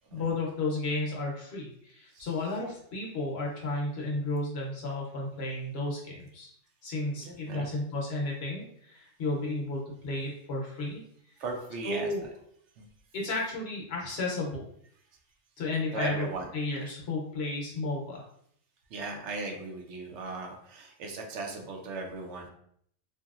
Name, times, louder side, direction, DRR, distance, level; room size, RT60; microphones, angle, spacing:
voice 1, 0.1-6.5 6.8-11.0 11.8-12.3 13.1-14.6 15.6-16.3 16.5-18.2, left 2 dB, 60° left, -2 dB, 0.9 m, -33 dB
voice 2, 2.1-2.6 7.2-7.7 11.4-12.3 12.8-12.9 15.9-16.8 18.9-22.5, right 3 dB, 70° right, 1 dB, 0.8 m, -38 dB
2.8 x 2.6 x 2.4 m, 0.67 s
omnidirectional pair, 1.3 m